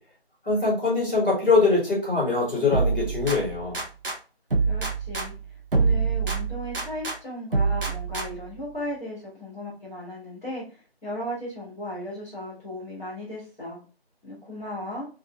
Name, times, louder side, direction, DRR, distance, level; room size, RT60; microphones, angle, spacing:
voice 1, 0.4-3.8, left 3 dB, 10° right, -16 dB, 2.1 m, -23 dB
sound 1, 2.7-4.2 4.5-7.2 7.5-8.5, right 4 dB, 60° right, 0.8 m, -26 dB
voice 2, 4.6-5.3 5.7-13.8 14.2-15.1, left 1 dB, 15° left, -8 dB, 1.4 m, -36 dB
5.4 x 2.5 x 2.3 m, 0.37 s
figure-of-eight pair, 165°, 31 cm